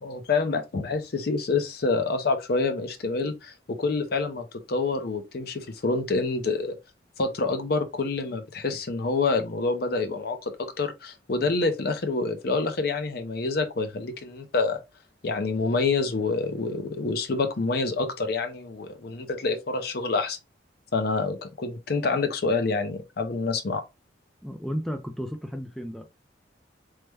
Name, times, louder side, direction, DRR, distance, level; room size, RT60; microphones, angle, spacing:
voice 1, 0.0-6.8 7.2-14.8 15.2-20.4 20.9-23.8, left 3 dB, 55° left, 0.6 m, -27 dB
voice 2, 24.4-26.0, equal, ahead, 0.3 m, -33 dB
3.2 x 2.1 x 3.3 m
head